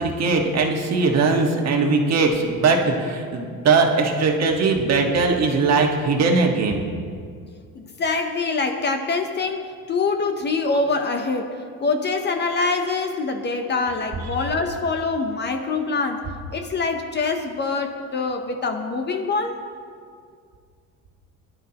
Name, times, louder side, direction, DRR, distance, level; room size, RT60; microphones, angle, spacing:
voice 1, 0.0-6.9, right 4 dB, 50° right, 1 dB, 1.5 m, -20 dB
voice 2, 7.7-19.7, left 3 dB, 30° left, 6 dB, 0.7 m, -25 dB
20.5 x 11.5 x 2.9 m, 2.2 s
cardioid pair, 160°, 35 cm